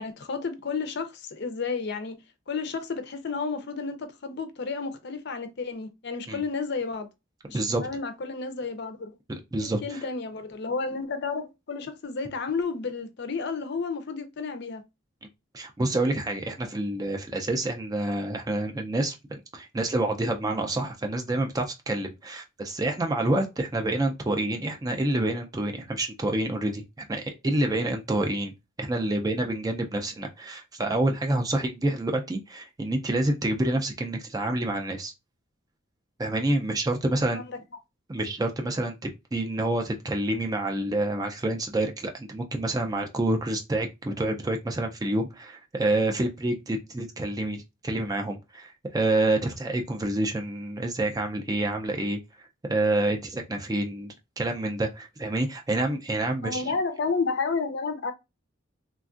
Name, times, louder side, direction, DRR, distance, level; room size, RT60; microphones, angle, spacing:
voice 1, 0.0-2.2 2.5-7.1 7.5-9.1 9.6-14.8 37.1-37.6 56.4-58.1, left 4 dB, 55° left, 0.5 m, -31 dB
voice 2, 7.5-7.9 9.5-10.0 15.5-19.2 19.5-28.5 28.8-35.1 36.2-37.4 38.1-38.9 39.3-52.2 52.6-56.6, right 2 dB, 20° right, 0.4 m, -28 dB
3.3 x 2.3 x 2.4 m
head